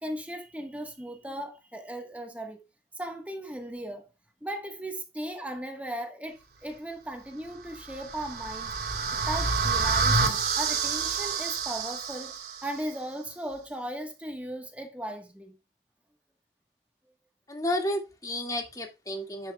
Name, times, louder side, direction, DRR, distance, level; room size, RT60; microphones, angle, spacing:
voice 1, 0.0-2.6 2.9-4.1 4.4-8.7 9.3-12.3 12.6-15.5, right 1 dB, 10° right, 1.4 m, -37 dB
sound 1, 7.7-12.7, right 4 dB, 70° right, 3.3 m, -28 dB
voice 2, 17.5-19.5, left 1 dB, 20° left, 2.2 m, -31 dB
10.5 x 7.7 x 2.4 m
head